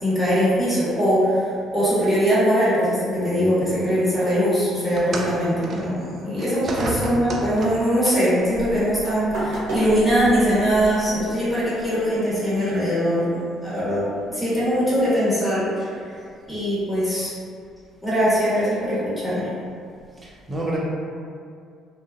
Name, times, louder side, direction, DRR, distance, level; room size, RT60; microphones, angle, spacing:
voice 1, 0.0-1.5 1.7-13.3 13.6-14.0 14.3-15.9 16.5-17.3 18.0-19.5, equal, ahead, -12 dB, 1.3 m, -21 dB
sound 1, 4.9-8.0 9.0-9.2 10.0-10.1, right 2 dB, 50° right, 0.3 m, -32 dB
voice 2, 6.6-7.0 20.2-20.8, right 2 dB, 30° right, -5 dB, 0.7 m, -30 dB
sound 2, 8.4-13.4, right 1 dB, 75° right, 0.9 m, -34 dB
2.5 x 2.2 x 2.5 m, 2.3 s
hypercardioid pair, 55°, 0 cm